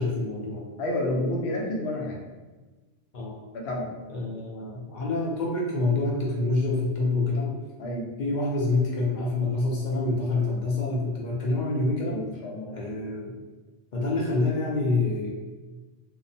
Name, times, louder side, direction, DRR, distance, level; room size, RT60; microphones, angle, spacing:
voice 1, 0.0-0.7 3.1-3.3 4.1-7.5 8.2-12.2 12.7-13.3 13.9-15.3, left 2 dB, 55° left, -3 dB, 0.6 m, -26 dB
voice 2, 0.8-2.2 3.5-3.9 7.8-8.1 12.0-12.8, left 1 dB, 80° left, -1 dB, 0.9 m, -30 dB
2.8 x 2.0 x 2.6 m, 1.3 s
omnidirectional pair, 1.1 m